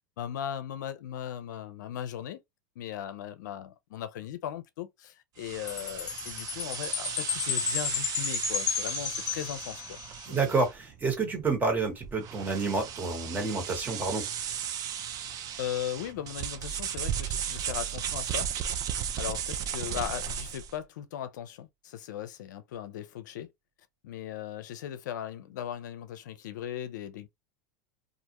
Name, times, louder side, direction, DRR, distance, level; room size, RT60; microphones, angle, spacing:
voice 1, 0.2-2.4 2.8-10.0 10.3-10.4 15.6-18.5 19.2-23.5 24.0-27.3, left 10 dB, 75° left, 0.5 m, -38 dB
sound 1, 5.4-20.8, right 9 dB, 40° right, 0.5 m, -36 dB
Chime, 5.7-10.2, left 8 dB, 40° left, 0.9 m, -33 dB
voice 2, 10.2-14.6, right 4 dB, 20° right, 1.2 m, -29 dB
sound 2, 16.5-19.5, right 13 dB, 60° right, 1.1 m, -43 dB
2.4 x 2.1 x 2.8 m
hypercardioid pair, 110°, 10 cm